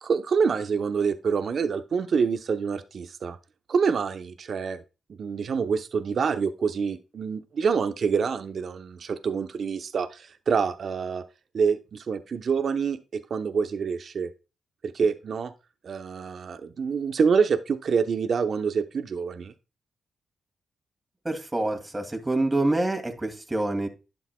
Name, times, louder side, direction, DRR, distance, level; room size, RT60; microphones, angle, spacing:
voice 1, 0.0-3.4 3.7-4.8 5.2-11.2 11.5-14.3 14.9-15.5 15.8-19.5, right 6 dB, 60° right, 9 dB, 0.8 m, -26 dB
voice 2, 21.2-23.9, right 2 dB, 20° right, 3 dB, 2.3 m, -26 dB
11.5 x 7.1 x 2.2 m, 0.29 s
supercardioid pair, 45°, 0 cm